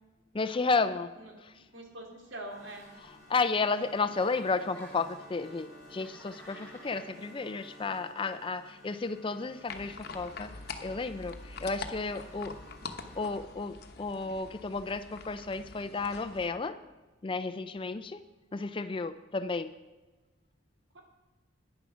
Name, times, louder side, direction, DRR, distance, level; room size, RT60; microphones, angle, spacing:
voice 1, 0.3-1.1 1.4-1.5 3.3-10.5 10.8-12.5 13.1-16.8 17.2-18.2 18.5-19.7, left 4 dB, 25° left, 12 dB, 0.4 m, -32 dB
voice 2, 1.7-2.9 20.9-21.0, right 1 dB, 70° right, 1 dB, 2.6 m, -44 dB
sound 1, 2.2-13.3, equal, 15° right, 2.9 m, -54 dB
Giggle, 2.6-3.5 3.8-5.2 5.8-7.1, equal, 10° left, 4.3 m, -53 dB
sound 2, 9.7-16.5, left 4 dB, 50° left, 1.0 m, -45 dB
11.0 x 9.8 x 6.1 m, 1.2 s
head